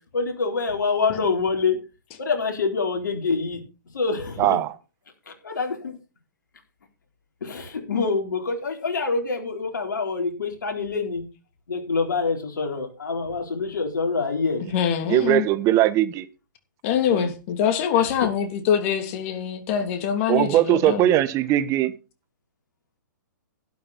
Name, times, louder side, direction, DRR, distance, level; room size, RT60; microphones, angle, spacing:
voice 1, 0.1-1.8 2.2-3.6 3.9-4.6 5.3-5.9 7.4-11.2 11.7-14.7 18.0-18.1, left 4 dB, 80° left, 3 dB, 4.1 m, -26 dB
voice 2, 4.4-4.7 15.1-16.3 17.1-17.3 20.3-21.9, right 13 dB, 30° right, 14 dB, 1.2 m, -20 dB
voice 3, 14.7-15.5 16.8-21.2, left 9 dB, 45° left, 7 dB, 3.0 m, -24 dB
12.0 x 11.0 x 4.2 m, 0.31 s
hypercardioid pair, 125°, 10 cm